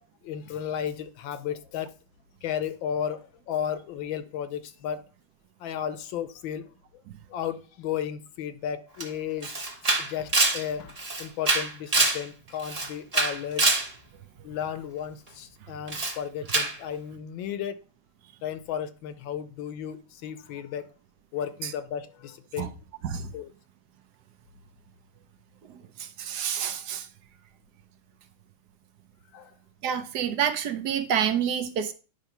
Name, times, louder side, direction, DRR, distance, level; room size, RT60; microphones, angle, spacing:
voice 1, 0.2-1.9 2.4-5.0 5.6-6.7 7.3-9.5 10.0-13.6 14.4-17.8 18.4-20.9 21.3-22.7 23.3-23.5 29.3-29.5, left 9 dB, 75° left, 12 dB, 1.5 m, -34 dB
Camera, 9.0-9.1 9.4-12.2 12.6-13.9 15.9-16.2 16.5-16.8, right 2 dB, 25° right, 1.0 m, -25 dB
voice 2, 26.0-27.1 29.8-31.9, right 8 dB, 65° right, 10 dB, 1.1 m, -28 dB
10.0 x 3.4 x 5.7 m, 0.35 s
omnidirectional pair, 2.1 m